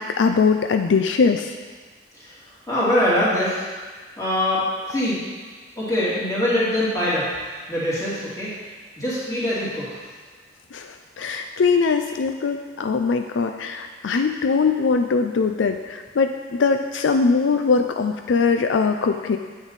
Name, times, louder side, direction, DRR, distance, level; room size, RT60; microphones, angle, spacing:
voice 1, 0.0-1.5 10.7-19.4, left 4 dB, 75° left, 6 dB, 0.4 m, -21 dB
voice 2, 2.7-3.6 4.2-5.2 5.8-7.3 7.7-8.7 9.0-10.0, left 1 dB, 15° left, -9 dB, 2.8 m, -23 dB
9.3 x 8.0 x 4.1 m, 1.5 s
head